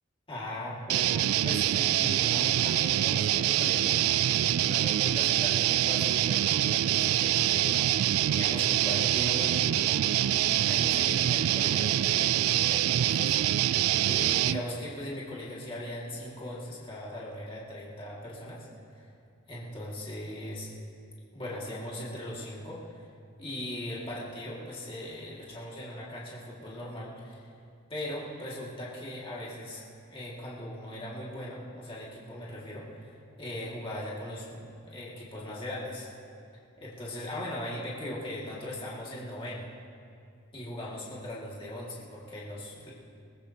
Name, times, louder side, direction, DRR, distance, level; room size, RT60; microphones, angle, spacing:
voice 1, 0.3-4.0 4.6-19.1 19.5-20.7 21.3-23.1 23.4-27.5 27.9-29.8 30.1-36.1 36.8-39.7 40.5-42.9, left 1 dB, 25° left, -6 dB, 2.2 m, -39 dB
sound 1, 0.9-14.6, right 12 dB, 85° right, 0.3 m, -25 dB
21.0 x 19.0 x 2.9 m, 2.4 s
head